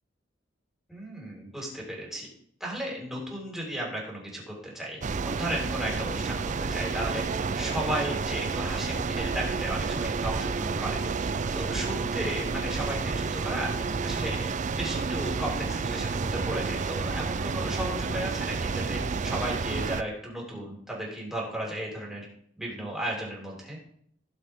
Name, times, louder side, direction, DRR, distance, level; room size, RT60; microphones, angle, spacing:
voice 1, 0.9-2.3 2.6-13.7 14.0-22.3 22.6-23.8, right 1 dB, ahead, -4 dB, 4.6 m, -35 dB
sound 1, 5.0-20.0, right 4 dB, 40° right, 0.5 m, -30 dB
18.5 x 6.5 x 3.6 m, 0.65 s
head